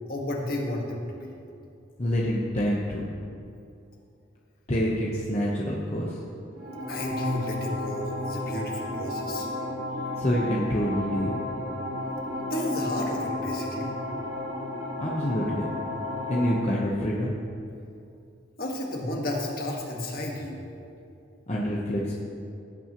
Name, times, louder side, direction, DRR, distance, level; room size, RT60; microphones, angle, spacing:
voice 1, 0.1-1.3 6.9-9.5 12.4-13.9 18.6-20.6, left 1 dB, 50° left, -1 dB, 1.7 m, -32 dB
voice 2, 2.0-3.1 4.7-6.1 10.2-11.4 15.0-15.7 16.3-17.3 21.5-22.1, equal, 35° left, -5 dB, 1.0 m, -27 dB
sound 1, 6.5-16.5, left 1 dB, 70° right, 2.2 m, -33 dB
17.5 x 8.6 x 3.1 m, 2.6 s
head